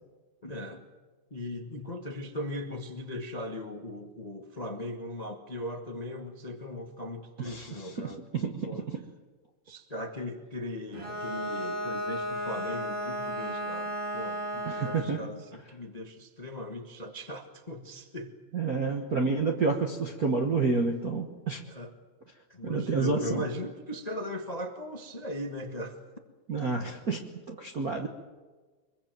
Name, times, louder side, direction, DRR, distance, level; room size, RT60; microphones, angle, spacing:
voice 1, 0.4-0.8 1.3-8.2 8.6-8.8 9.7-18.3 21.7-21.9 22.5-26.0, left 1 dB, 60° left, 4 dB, 0.4 m, -38 dB
voice 2, 7.4-9.1 14.6-15.2 18.5-21.6 22.6-23.5 26.5-28.1, right 4 dB, 60° right, 3 dB, 0.9 m, -29 dB
Bowed string instrument, 10.9-15.2, equal, 25° right, 2.7 m, -34 dB
24.5 x 22.0 x 7.7 m, 1.4 s
omnidirectional pair, 3.7 m